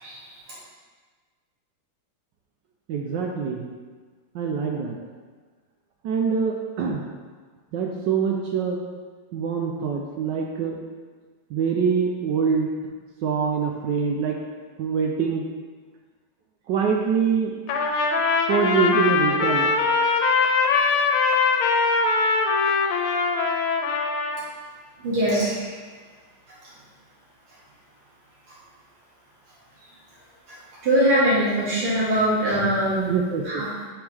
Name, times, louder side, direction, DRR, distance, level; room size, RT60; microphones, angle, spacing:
voice 1, 2.9-3.7 4.3-5.0 6.0-7.0 7.7-8.8 9.3-10.8 11.5-12.7 13.2-14.4 14.8-15.5 16.7-17.5 18.5-19.7 33.1-33.6, right 6 dB, 70° right, 0 dB, 1.1 m, -24 dB
Trumpet, 17.7-24.4, left 4 dB, 90° left, 1.5 m, -22 dB
voice 2, 25.0-25.6 30.5-30.6 30.8-33.1 33.4-33.7, right 1 dB, 90° right, -9 dB, 2.8 m, -22 dB
6.2 x 5.2 x 3.4 m, 1.4 s
omnidirectional pair, 2.3 m